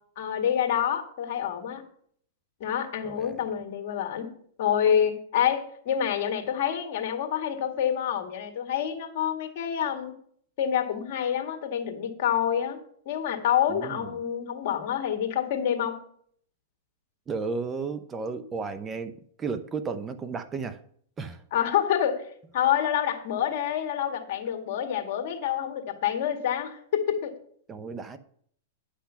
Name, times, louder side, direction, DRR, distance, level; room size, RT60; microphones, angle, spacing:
voice 1, 0.2-1.8 2.6-4.3 4.6-10.1 10.6-12.8 13.1-16.0 21.5-27.3, left 9 dB, 55° left, 1.9 m, -27 dB
voice 2, 3.0-3.4 13.7-14.1 17.3-19.1 19.4-20.8 21.2-21.4 27.7-28.2, right 4 dB, 20° right, 0.7 m, -33 dB
9.9 x 6.0 x 5.7 m
hypercardioid pair, 120°, 0 cm